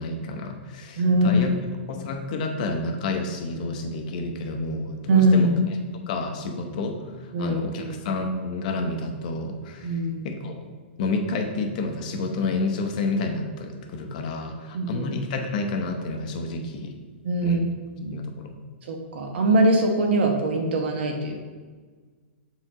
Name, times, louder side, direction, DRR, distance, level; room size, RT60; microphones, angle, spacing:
voice 1, 0.0-1.6 1.9-5.5 6.1-7.0 7.2-10.7 11.0-16.9 17.4-17.7 18.1-18.5, left 3 dB, 40° left, 4 dB, 0.7 m, -30 dB
voice 2, 1.0-1.4 5.1-5.5 7.3-7.8 9.8-10.3 14.7-15.0 17.2-17.6 17.9-18.3 18.9-21.4, right 1 dB, 60° right, 3 dB, 1.1 m, -22 dB
7.1 x 4.6 x 3.8 m, 1.4 s
hypercardioid pair, 170°, 7 cm